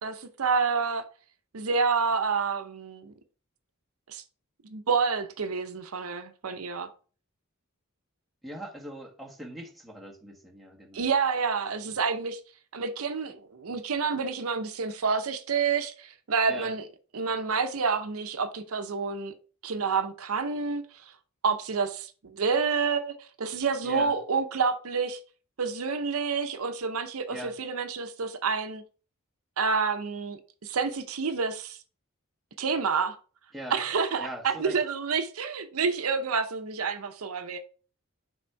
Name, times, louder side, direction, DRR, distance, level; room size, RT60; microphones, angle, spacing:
voice 1, 0.0-1.1 1.5-3.1 4.1-4.2 4.6-6.9 10.9-12.4 12.7-16.9 17.1-19.3 19.6-20.9 21.4-25.2 25.6-28.8 29.6-31.8 32.6-33.2 33.7-37.6, right 5 dB, 80° right, 0.7 m, -28 dB
voice 2, 8.4-11.0 16.5-16.7 23.8-24.1 27.3-27.5 33.5-33.8 34.2-34.8, right 1 dB, ahead, 1.3 m, -41 dB
6.1 x 3.6 x 4.5 m
head